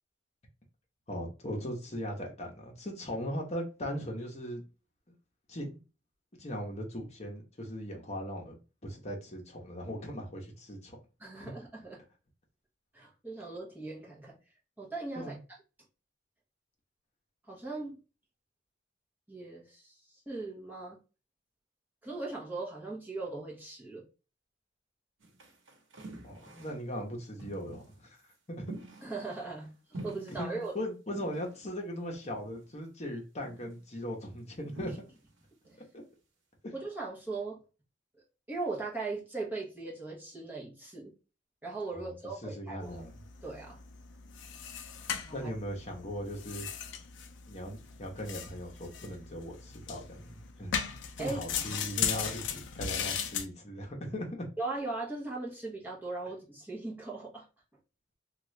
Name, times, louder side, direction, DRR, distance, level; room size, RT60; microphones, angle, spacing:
voice 1, 1.1-4.7 5.5-5.8 6.4-11.0 11.4-11.5 15.2-15.4 26.2-28.2 28.5-28.7 30.3-34.9 35.9-36.0 36.6-36.7 41.9-42.1 42.4-43.1 45.3-46.7 47.5-50.8 51.2-54.5, equal, 35° left, 0.9 m, -39 dB
voice 2, 11.2-12.0 12.9-14.4 14.8-15.4 17.5-18.0 19.3-20.0 20.3-21.0 22.0-24.0 29.0-29.7 30.0-30.7 35.6-35.8 36.7-37.6 38.5-41.1 41.6-43.0 43.4-43.8 45.3-45.5 51.2-51.4 54.6-57.5, right 3 dB, 10° right, 1.0 m, -39 dB
sound 1, 25.2-26.9 27.4-28.0 28.7-29.7 29.9-30.7 31.1-31.7 32.2-32.7 33.4-33.8 34.8-35.4 35.6-35.8, right 1 dB, 75° right, 1.0 m, -47 dB
sound 2, 42.8-53.5, left 7 dB, 65° left, 0.5 m, -38 dB
2.9 x 2.4 x 3.1 m
head